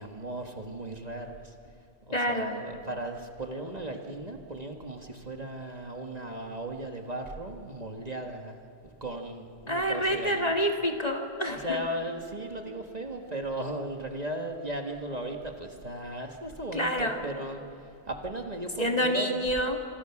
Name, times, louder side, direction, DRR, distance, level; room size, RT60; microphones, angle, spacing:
voice 1, 0.0-1.5 2.1-8.6 9.0-10.5 11.4-17.6 18.1-19.4, right 1 dB, 35° right, 2 dB, 1.7 m, -36 dB
voice 2, 2.1-2.5 9.7-11.8 16.7-17.2 18.8-19.8, equal, 35° left, 2 dB, 2.4 m, -27 dB
29.5 x 26.5 x 6.0 m, 2.4 s
omnidirectional pair, 1.1 m